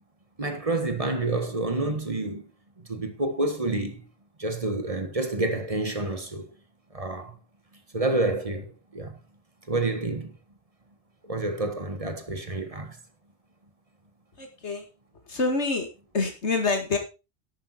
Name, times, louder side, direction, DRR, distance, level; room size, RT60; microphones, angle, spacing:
voice 1, 0.4-2.5 2.9-4.1 4.4-6.5 6.9-7.4 7.9-9.2 9.7-10.3 11.2-13.0, right 2 dB, 30° right, 1.6 m, -28 dB
voice 2, 14.4-14.9 15.3-17.0, left 3 dB, 80° left, 2.5 m, -27 dB
11.0 x 9.2 x 4.3 m
omnidirectional pair, 1.2 m